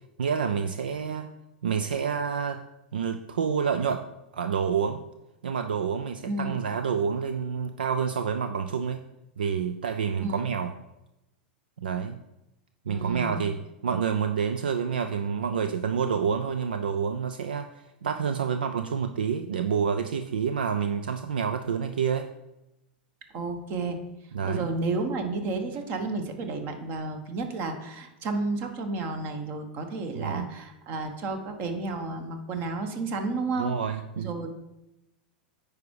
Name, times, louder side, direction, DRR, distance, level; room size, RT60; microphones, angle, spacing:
voice 1, 0.2-1.3 1.6-2.7 2.9-4.0 4.3-5.0 5.4-9.0 9.4-10.7 11.8-12.2 12.9-13.6 13.8-22.3 24.3-24.7 30.1-30.5 33.6-34.3, right 6 dB, 70° right, 8 dB, 0.5 m, -28 dB
voice 2, 6.3-6.6 10.2-10.4 12.9-13.4 23.3-24.0 24.4-33.7 34.2-34.5, right 3 dB, 40° right, 6 dB, 1.4 m, -31 dB
9.3 x 4.9 x 4.8 m, 0.91 s
figure-of-eight pair, 90°, 5 cm